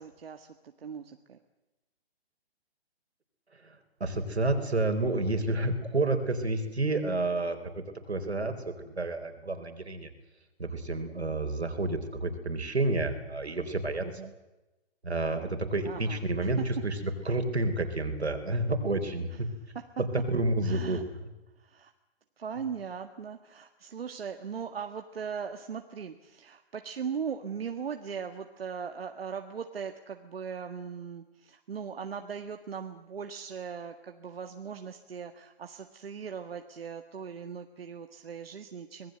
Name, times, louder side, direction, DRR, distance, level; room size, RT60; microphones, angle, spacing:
voice 1, 0.0-1.4 14.0-14.3 15.8-16.6 19.3-19.4 19.7-19.8 20.6-21.0 21.6-21.9 22.4-39.1, right 6 dB, 65° right, 6 dB, 1.8 m, -39 dB
voice 2, 4.0-10.1 10.6-14.1 15.0-19.5 20.0-21.0, right 2 dB, 90° right, 7 dB, 4.2 m, -30 dB
25.5 x 19.5 x 7.9 m, 1.0 s
hypercardioid pair, 140°, 32 cm